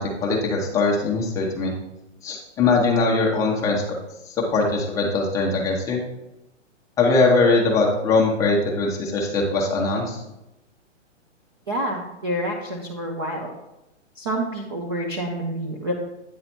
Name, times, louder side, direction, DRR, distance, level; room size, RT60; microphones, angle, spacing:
voice 1, 0.0-1.7 2.2-3.8 4.4-6.0 7.0-10.2, left 3 dB, 10° left, -2 dB, 0.7 m, -21 dB
voice 2, 11.7-13.5 14.2-15.9, right 1 dB, 20° right, 0 dB, 0.4 m, -28 dB
8.9 x 4.0 x 4.3 m, 0.94 s
hypercardioid pair, 145°, 37 cm